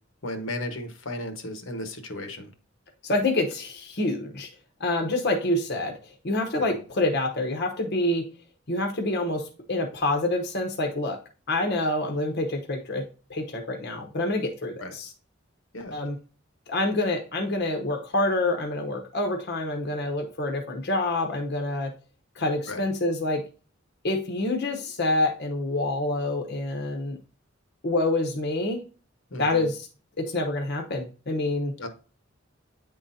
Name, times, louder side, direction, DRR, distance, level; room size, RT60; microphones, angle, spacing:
voice 1, 0.2-2.5 6.7-6.8 14.8-14.9 15.7-15.9 22.7-22.8 29.3-29.7 31.8-31.9, left 1 dB, 80° left, 7 dB, 1.2 m, -35 dB
voice 2, 3.0-4.5 4.8-6.0 6.2-8.2 8.7-11.2 11.5-15.1 15.9-16.2 16.7-21.9 22.4-23.4 24.0-27.2 27.8-28.8 29.4-29.9 30.2-31.7, left 2 dB, 55° left, 3 dB, 0.9 m, -27 dB
9.4 x 3.8 x 2.7 m, 0.36 s
head